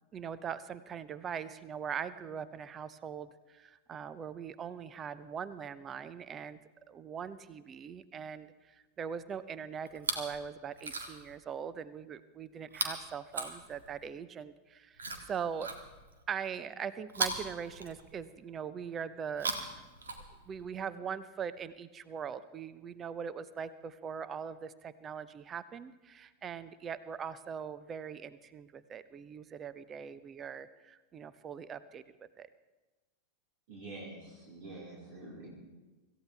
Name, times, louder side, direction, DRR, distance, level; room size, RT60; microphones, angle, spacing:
voice 1, 0.1-6.6 6.9-15.7 16.3-19.8 20.4-32.5, right 7 dB, 25° right, 16 dB, 0.7 m, -41 dB
Chewing mastication, 9.9-10.4 10.7-11.4 12.7-14.1 15.0-16.2 17.1-18.4 19.2-20.6 21.6-21.7, right 3 dB, 70° right, 1.8 m, -38 dB
voice 2, 33.7-35.5, right 2 dB, 50° right, -5 dB, 4.4 m, -46 dB
25.5 x 15.0 x 3.4 m, 1.2 s
figure-of-eight pair, 90°, 0 cm